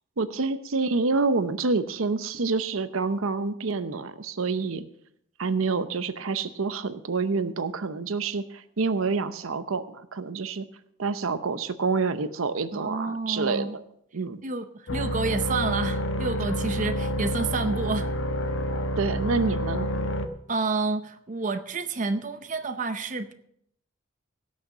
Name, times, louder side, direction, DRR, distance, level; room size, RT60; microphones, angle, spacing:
voice 1, 0.2-4.9 5.4-10.7 11.0-13.8 14.1-14.4 19.0-19.9, right 4 dB, 85° right, 12 dB, 0.8 m, -27 dB
voice 2, 12.7-13.8 14.4-18.1 20.5-23.3, right 3 dB, 35° right, 9 dB, 0.6 m, -29 dB
sound 1, 14.9-20.3, equal, 65° left, 1.0 m, -28 dB
17.5 x 6.5 x 6.1 m, 0.72 s
head